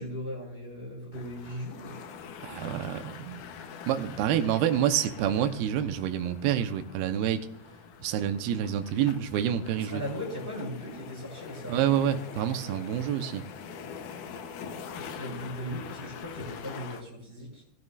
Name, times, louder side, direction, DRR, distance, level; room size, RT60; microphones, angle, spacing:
voice 1, 0.0-2.0 9.7-12.4 15.0-17.6, equal, 15° left, -3 dB, 6.2 m, -38 dB
sound 1, 1.1-17.0, left 6 dB, 90° left, 1.7 m, -44 dB
voice 2, 2.4-3.4 3.9-7.5 8.0-10.0 11.7-13.4, right 10 dB, 75° right, 8 dB, 2.5 m, -28 dB
19.5 x 12.5 x 2.5 m, 0.76 s
omnidirectional pair, 5.0 m